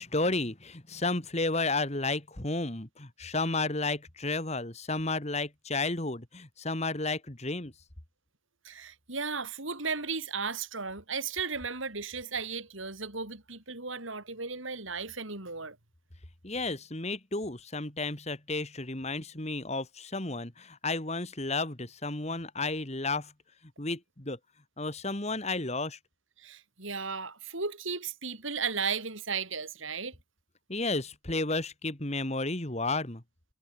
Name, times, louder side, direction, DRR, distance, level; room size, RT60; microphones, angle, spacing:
voice 1, 0.0-7.7 16.4-23.3 23.8-24.4 24.8-26.0 30.7-33.2, left 3 dB, 30° left, 2.0 m, -32 dB
voice 2, 8.6-15.8 26.4-30.1, right 5 dB, 70° right, 5.2 m, -35 dB
head